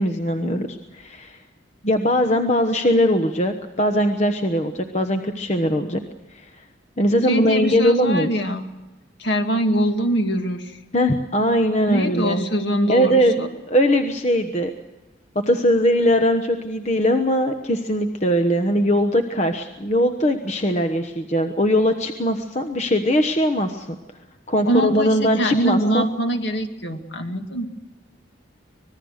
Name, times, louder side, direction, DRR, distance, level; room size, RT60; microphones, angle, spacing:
voice 1, 0.0-1.4 1.8-6.0 6.3-6.5 7.0-8.3 10.9-12.4 12.9-13.3 13.7-14.7 15.5-23.9 24.5-26.0, equal, 35° left, 6 dB, 1.1 m, -20 dB
voice 2, 7.3-8.7 9.2-10.8 11.9-13.5 24.7-27.7, equal, 60° left, 5 dB, 2.2 m, -23 dB
25.5 x 20.0 x 6.5 m, 1.1 s
head